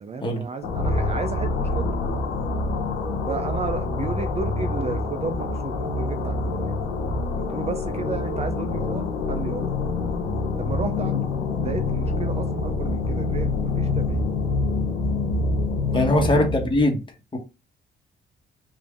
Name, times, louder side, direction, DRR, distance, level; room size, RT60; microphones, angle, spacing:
voice 1, 0.0-1.9 3.3-6.7 7.5-9.7 10.6-11.3 11.6-14.2 15.9-16.4, right 5 dB, 30° right, 0.5 m, -33 dB
sound 1, 0.6-16.8, left 3 dB, 85° left, 0.8 m, -26 dB
voice 2, 15.9-17.0 17.3-17.4, left 1 dB, 25° left, 1.2 m, -21 dB
3.4 x 2.6 x 3.4 m
cardioid pair, 90°, 20 cm